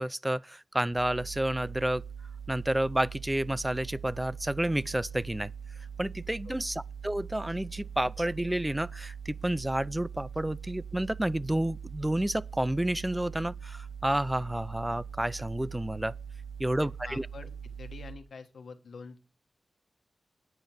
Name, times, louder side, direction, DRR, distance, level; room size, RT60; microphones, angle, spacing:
voice 1, 0.0-2.0 2.5-5.5 6.0-16.1 16.6-17.3, right 1 dB, 15° right, 0.5 m, -30 dB
sound 1, 0.9-18.1, right 7 dB, 75° right, 2.1 m, -42 dB
voice 2, 16.8-19.2, left 5 dB, 90° left, 1.3 m, -47 dB
9.8 x 5.2 x 7.5 m
cardioid pair, 50°, 0 cm